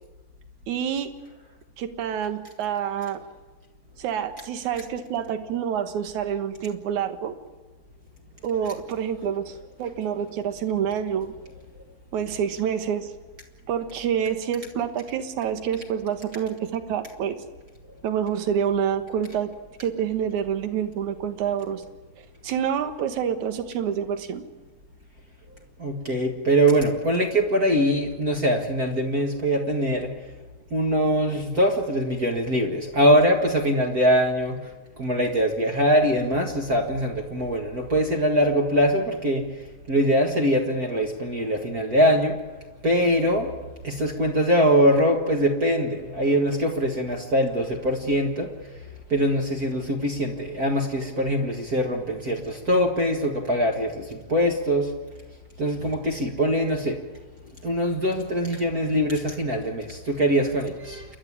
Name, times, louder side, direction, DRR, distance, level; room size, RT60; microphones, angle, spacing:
voice 1, 0.7-1.1 1.8-3.2 4.0-7.3 8.4-11.3 12.1-13.1 13.7-17.4 18.0-19.5 19.8-21.8 22.2-24.4, right 8 dB, 60° right, 8 dB, 2.5 m, -27 dB
voice 2, 25.8-30.1 30.7-34.6 35.0-39.4 39.9-42.4 42.8-43.5 43.8-48.5 49.1-54.9 55.6-57.0 57.6-61.0, equal, 40° right, 2 dB, 1.3 m, -22 dB
29.0 x 11.5 x 9.9 m, 1.2 s
omnidirectional pair, 4.1 m